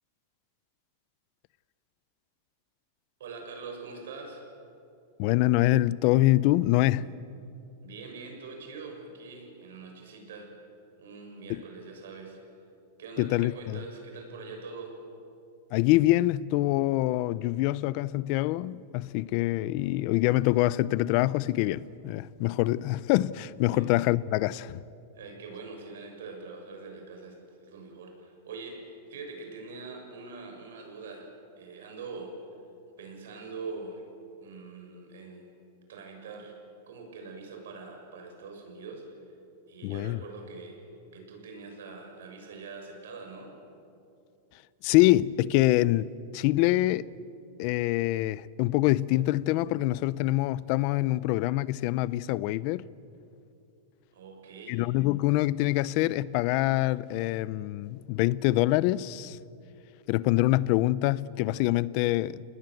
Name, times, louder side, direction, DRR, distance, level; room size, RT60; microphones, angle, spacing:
voice 1, 3.2-4.4 7.8-10.5 11.0-12.4 13.0-15.0 23.7-23.9 25.1-31.3 31.6-32.3 33.0-34.0 34.4-35.5 35.9-36.6 36.9-39.0 39.7-40.8 41.1-43.5 54.1-54.8, right 4 dB, 85° right, 6.8 m, -43 dB
voice 2, 5.2-7.1 11.5-11.6 13.2-13.8 15.7-24.7 39.8-40.2 44.8-46.1 46.3-47.1 47.6-52.9 54.7-59.4 60.1-62.4, left 17 dB, 40° left, 0.5 m, -25 dB
29.0 x 20.0 x 7.9 m
supercardioid pair, 175°, 0 cm